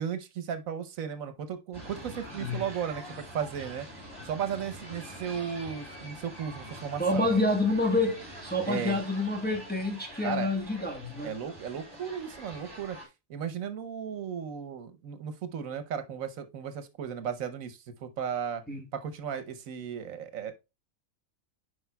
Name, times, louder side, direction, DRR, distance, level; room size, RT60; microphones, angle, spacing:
voice 1, 0.0-3.9 4.2-7.4 8.6-9.0 10.2-10.5 11.2-13.0 13.3-18.6 18.9-20.6, right 7 dB, 80° right, 1.2 m, -35 dB
sound 1, 1.7-13.1, equal, 15° right, 3.9 m, -45 dB
voice 2, 7.0-11.3 18.7-18.8, left 2 dB, 10° left, 1.0 m, -28 dB
9.9 x 5.0 x 2.2 m
omnidirectional pair, 1.4 m